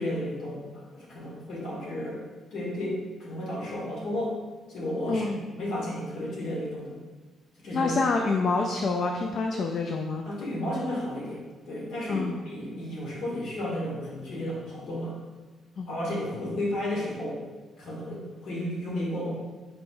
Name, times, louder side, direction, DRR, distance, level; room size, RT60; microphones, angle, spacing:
voice 1, 0.0-2.2 2.5-4.3 4.7-6.9 7.6-7.9 10.2-11.4 11.7-15.1 15.9-17.4 17.8-19.3, left 1 dB, 75° left, -5 dB, 1.4 m, -33 dB
voice 2, 7.7-10.3 12.1-12.3 15.8-15.9, left 4 dB, 60° left, 2 dB, 0.3 m, -27 dB
5.3 x 4.0 x 2.2 m, 1.3 s
cardioid pair, 90°, 0 cm